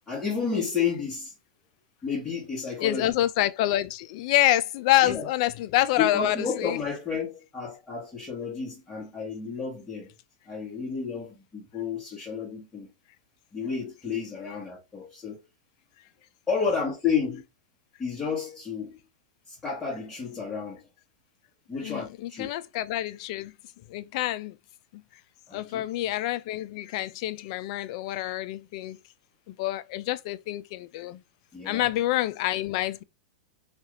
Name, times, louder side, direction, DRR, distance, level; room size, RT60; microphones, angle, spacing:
voice 1, 0.1-1.3 2.0-3.1 5.0-5.3 6.0-10.1 10.5-12.9 13.5-15.4 16.5-17.4 18.0-19.0 19.5-20.8 21.7-22.5 25.5-25.8 31.5-31.9, left 6 dB, 10° left, 1.3 m, -31 dB
voice 2, 2.8-6.8 21.8-23.5 23.9-24.6 24.9-25.0 25.5-29.0 29.5-31.2 31.6-33.0, left 14 dB, 55° left, 0.4 m, -27 dB
2.8 x 2.4 x 3.2 m
supercardioid pair, 135°, 4 cm